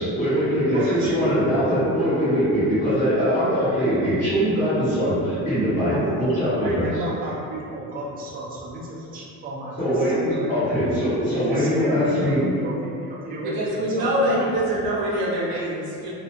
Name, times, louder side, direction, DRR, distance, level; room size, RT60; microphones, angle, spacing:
voice 1, 0.0-7.0 9.8-12.4, equal, 25° left, -15 dB, 1.2 m, -22 dB
voice 2, 0.7-1.2 5.9-6.0 6.5-10.9 11.3-14.5, right 1 dB, 25° right, -5 dB, 0.5 m, -33 dB
voice 3, 13.4-16.1, right 1 dB, 75° right, -5 dB, 0.8 m, -24 dB
2.7 x 2.3 x 2.5 m, 2.7 s
cardioid pair, 130°, 35 cm